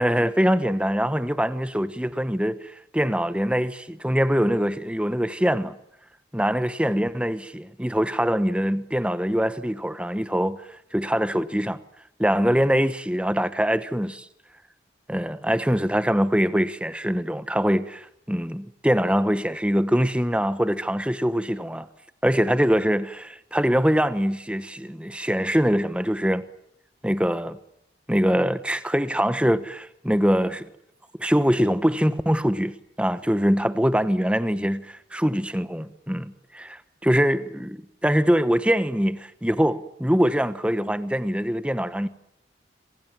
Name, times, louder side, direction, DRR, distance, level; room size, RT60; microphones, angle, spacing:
voice 1, 0.0-5.8 6.3-11.8 12.2-14.3 15.1-21.9 22.2-26.5 27.0-27.6 28.1-30.7 31.2-42.1, equal, 5° right, 1.1 m, -23 dB
27.5 x 26.0 x 7.4 m
head